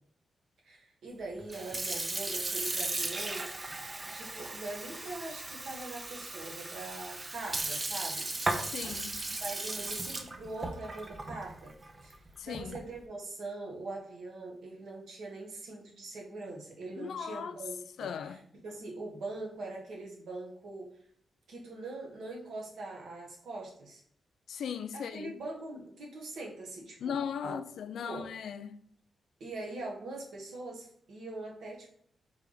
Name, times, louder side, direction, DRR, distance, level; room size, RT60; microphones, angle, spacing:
voice 1, 0.6-3.7 4.0-8.3 8.8-11.7 12.0-12.1 12.4-20.9 21.5-24.0 24.9-27.6 28.0-28.3 29.4-31.9, right 2 dB, 80° right, 1.1 m, -42 dB
Sink (filling or washing) / Fill (with liquid), 1.4-12.9, right 2 dB, 30° right, 0.5 m, -37 dB
voice 2, 8.6-9.2 12.4-12.8 17.0-17.6 18.0-18.4 24.5-25.3 27.0-28.8, left 7 dB, 80° left, 0.3 m, -38 dB
3.4 x 3.2 x 3.8 m
cardioid pair, 80°, 0 cm